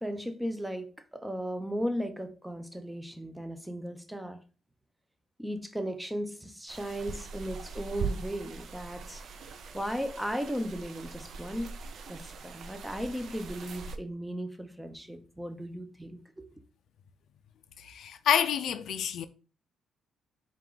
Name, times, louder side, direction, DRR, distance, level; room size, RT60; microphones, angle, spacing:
voice 1, 0.0-4.4 5.4-9.2 9.7-11.8 12.1-16.6, equal, 5° right, 0.5 m, -36 dB
sound 1, 6.7-14.0, right 5 dB, 60° right, 0.4 m, -41 dB
voice 2, 17.8-19.3, left 9 dB, 70° left, 0.3 m, -28 dB
4.4 x 2.4 x 3.7 m
cardioid pair, 90°, 0 cm